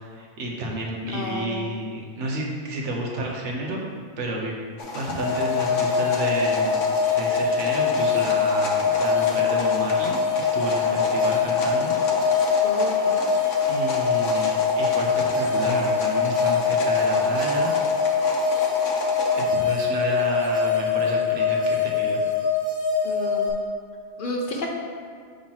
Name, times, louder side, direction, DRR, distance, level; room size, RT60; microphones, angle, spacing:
voice 1, 0.0-3.8 4.2-4.5 4.9-6.8 7.2-12.6 13.7-15.1 15.3-17.7 19.3-22.2, right 1 dB, 75° right, -1 dB, 1.2 m, -31 dB
voice 2, 1.1-1.7 12.6-13.2 23.0-23.6 24.2-24.7, left 1 dB, 50° left, 0 dB, 0.9 m, -31 dB
sound 1, 4.8-19.4, left 1 dB, 80° left, 1.2 m, -31 dB
sound 2, 5.2-23.5, left 6 dB, 15° left, 1.3 m, -23 dB
6.5 x 3.0 x 5.6 m, 2.1 s
omnidirectional pair, 1.3 m